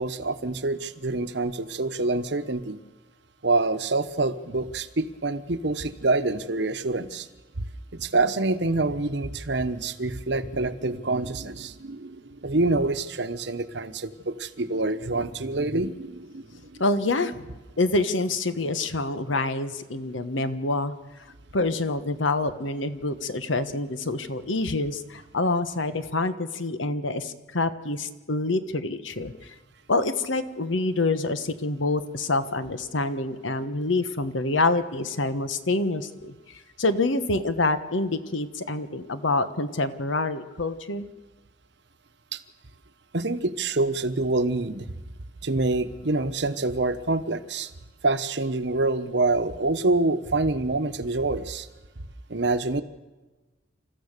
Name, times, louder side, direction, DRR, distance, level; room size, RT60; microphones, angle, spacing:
voice 1, 0.0-2.8 3.4-7.3 7.9-16.8 42.3-42.4 43.1-44.9 45.4-47.7 48.0-51.7 52.3-52.8, right 2 dB, 65° right, 11 dB, 1.0 m, -26 dB
voice 2, 16.8-17.5 17.8-20.9 21.5-29.5 29.9-41.1, left 2 dB, 85° left, 11 dB, 1.3 m, -26 dB
28.0 x 14.0 x 6.7 m, 1.2 s
head